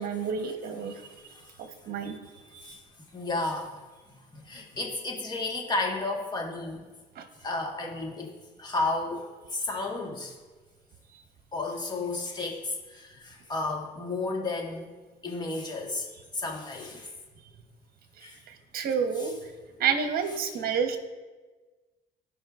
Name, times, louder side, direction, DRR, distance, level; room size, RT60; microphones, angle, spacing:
voice 1, 0.0-1.0 1.6-2.2 2.5-2.7 7.2-7.3 11.1-11.2 18.5-19.5 19.8-21.0, right 6 dB, 60° right, 7 dB, 1.1 m, -30 dB
voice 2, 0.9-1.5 2.6-2.8 3.1-3.8 4.1-6.8 7.4-8.3 8.6-10.3 11.5-15.0 15.2-16.1 16.3-17.1 18.2-18.4 19.2-19.3, left 2 dB, 25° left, 0 dB, 1.5 m, -33 dB
16.0 x 5.4 x 2.5 m, 1.3 s
cardioid pair, 110°, 17 cm